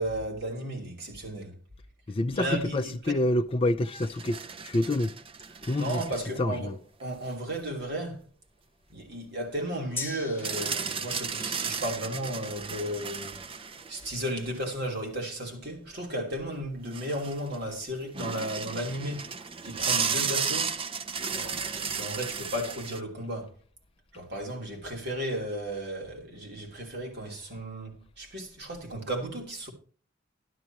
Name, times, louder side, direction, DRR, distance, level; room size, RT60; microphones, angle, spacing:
voice 1, 0.0-1.5 2.3-3.2 5.8-6.7 7.0-8.2 8.9-13.4 13.9-19.3 19.6-20.8 21.3-23.5 24.1-29.7, right 1 dB, 55° right, 3.0 m, -34 dB
voice 2, 2.1-4.4 4.6-5.1 5.7-6.0 6.4-6.7, left 1 dB, 30° left, 0.5 m, -27 dB
sound 1, 3.8-6.4 7.0-7.1 10.4-14.8 16.3-16.4 16.6-17.7 18.1-23.0, right 6 dB, 30° right, 0.6 m, -34 dB
Gong, 10.0-17.7 18.1-18.2, left 4 dB, 10° left, 1.1 m, -46 dB
12.5 x 11.5 x 2.9 m
head